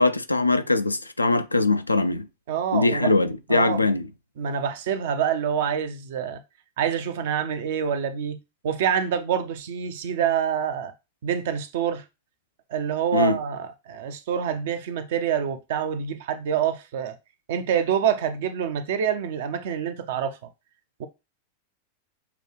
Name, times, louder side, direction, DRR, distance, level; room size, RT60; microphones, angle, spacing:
voice 1, 0.0-2.3 2.7-4.1 13.1-13.4, left 3 dB, 85° left, 0.4 m, -22 dB
voice 2, 2.5-3.1 3.5-3.8 4.4-6.4 6.8-8.4 8.6-10.9 11.2-12.0 12.7-17.2 17.5-20.4 21.0-21.1, right 8 dB, 55° right, 0.6 m, -26 dB
6.7 x 2.3 x 3.1 m
figure-of-eight pair, 90°, 0 cm